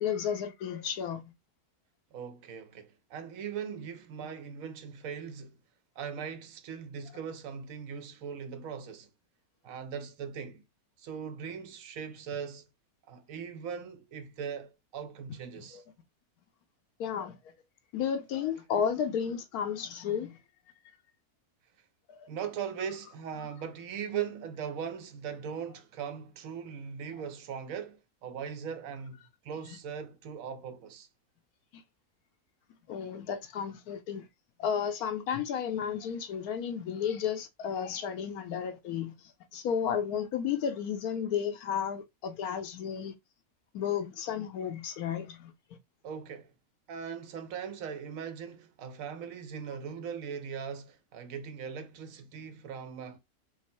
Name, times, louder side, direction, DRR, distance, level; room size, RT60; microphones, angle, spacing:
voice 1, 0.0-1.2 15.6-15.8 17.0-17.3 17.9-20.4 22.2-22.3 31.7-31.8 32.9-34.3 34.6-39.1 39.5-43.1 43.7-45.5, left 8 dB, 80° left, 1.2 m, -33 dB
voice 2, 2.1-5.6 6.0-9.1 9.6-10.6 11.0-12.7 13.1-15.8 22.3-29.2 29.4-31.1 46.0-46.5 46.9-53.2, right 7 dB, 70° right, 1.0 m, -39 dB
4.7 x 2.0 x 4.2 m
omnidirectional pair, 1.6 m